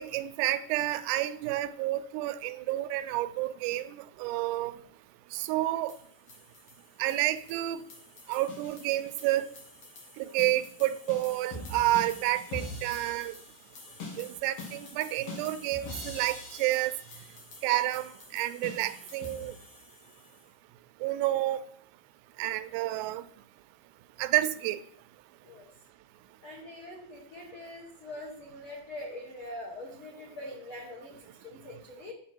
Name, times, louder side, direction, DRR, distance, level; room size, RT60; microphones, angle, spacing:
voice 1, 0.0-4.7 5.3-5.9 7.0-7.8 8.3-9.5 10.2-13.3 14.2-16.9 17.6-19.5 21.0-21.6 22.4-23.2 24.2-24.8, right 15 dB, 90° right, 11 dB, 2.7 m, -30 dB
sound 1, 5.9-20.4, left 2 dB, 45° left, 2.4 m, -45 dB
voice 2, 26.4-32.1, left 1 dB, 80° left, -1 dB, 1.1 m, -43 dB
10.5 x 6.9 x 4.5 m, 0.64 s
omnidirectional pair, 4.8 m